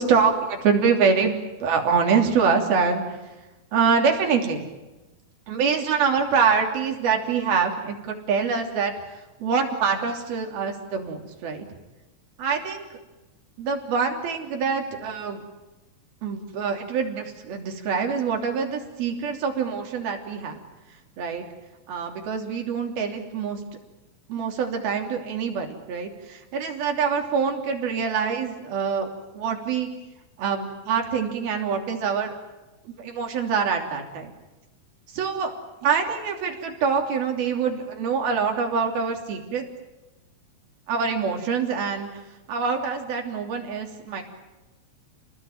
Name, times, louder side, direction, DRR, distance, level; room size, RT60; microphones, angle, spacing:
voice 1, 0.0-1.3 1.6-3.2 3.7-4.7 5.5-8.9 9.4-11.6 12.4-13.0 13.6-15.4 16.2-20.6 21.2-21.5 21.9-23.6 24.3-29.1 29.3-29.9 30.4-32.3 32.9-34.3 35.1-35.5 35.8-39.6 40.9-42.1 42.5-44.2, right 6 dB, 90° right, 3 dB, 5.0 m, -25 dB
29.5 x 20.0 x 9.0 m, 1.1 s
omnidirectional pair, 4.2 m